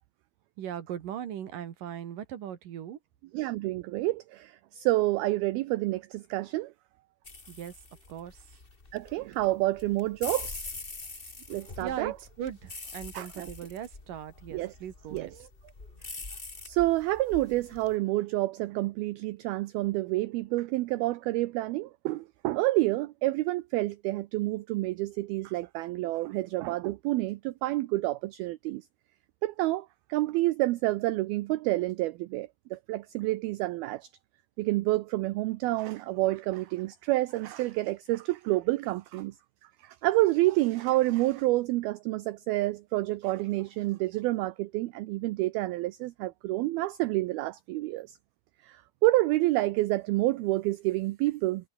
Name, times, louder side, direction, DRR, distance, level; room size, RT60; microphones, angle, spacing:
voice 1, 0.6-3.0 7.5-7.8 8.1-8.4 11.8-15.3, right 10 dB, 60° right, 3.0 m, -39 dB
voice 2, 3.3-6.7 8.9-10.7 11.5-12.1 13.1-13.5 14.5-14.7 15.1-15.5 16.6-28.8 29.4-34.1 34.6-39.4 39.8-48.2 48.6-51.7, right 18 dB, 80° right, 2.2 m, -28 dB
sound 1, 7.2-17.9, left 3 dB, 20° left, 1.6 m, -44 dB
omnidirectional pair, 5.1 m